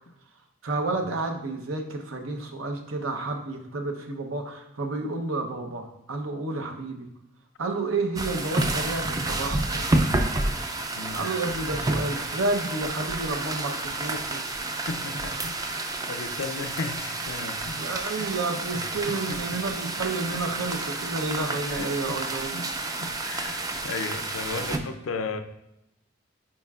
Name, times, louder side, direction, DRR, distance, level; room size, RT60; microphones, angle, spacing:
voice 1, 0.6-7.1 7.6-9.9 11.1-14.4 17.8-22.7, right 3 dB, 80° right, 4 dB, 0.8 m, -30 dB
sound 1, 8.2-24.8, right 2 dB, 20° right, 0.4 m, -30 dB
voice 2, 10.9-11.3 14.6-18.3 18.7-19.6 20.3-20.7 21.5-22.2 22.5-22.6 23.0-25.4, left 4 dB, 85° left, 8 dB, 0.5 m, -36 dB
9.5 x 4.3 x 2.4 m, 0.83 s
head